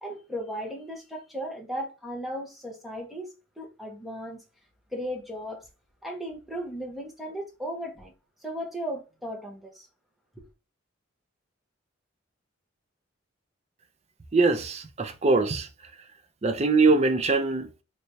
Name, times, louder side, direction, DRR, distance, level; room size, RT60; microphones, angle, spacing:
voice 1, 0.0-4.4 4.9-5.7 6.0-8.1 8.4-9.9 10.4-10.5, equal, ahead, 0.9 m, -36 dB
voice 2, 14.3-15.7 16.4-17.8, right 3 dB, 30° right, 0.5 m, -23 dB
3.3 x 3.1 x 2.6 m
head